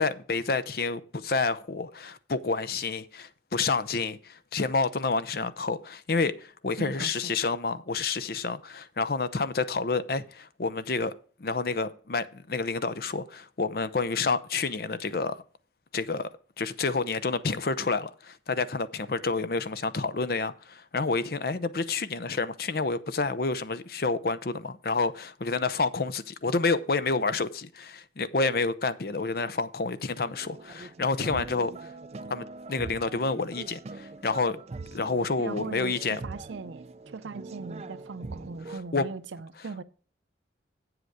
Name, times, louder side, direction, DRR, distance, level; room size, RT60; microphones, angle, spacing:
voice 1, 0.0-11.1 11.4-15.4 15.9-16.3 16.6-31.9 32.3-34.6 34.9-36.2 38.7-39.0, left 4 dB, 55° left, 0.6 m, -29 dB
voice 2, 6.8-7.3 35.4-39.8, right 4 dB, 90° right, 0.6 m, -40 dB
sound 1, 30.2-38.8, right 3 dB, 35° right, 0.4 m, -42 dB
8.0 x 7.8 x 4.9 m
head